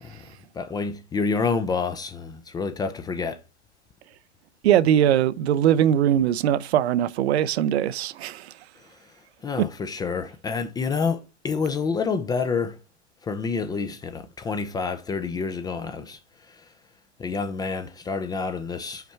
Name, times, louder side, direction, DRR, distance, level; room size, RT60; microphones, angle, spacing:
voice 1, 0.0-3.4 8.8-8.9 9.4-12.8 13.2-16.2 16.5-16.6 17.2-19.1, left 5 dB, 10° left, 0.4 m, -28 dB
voice 2, 4.6-8.5 9.6-9.7, right 10 dB, 65° right, 0.6 m, -21 dB
5.7 x 4.3 x 4.4 m
hypercardioid pair, 110°, 35 cm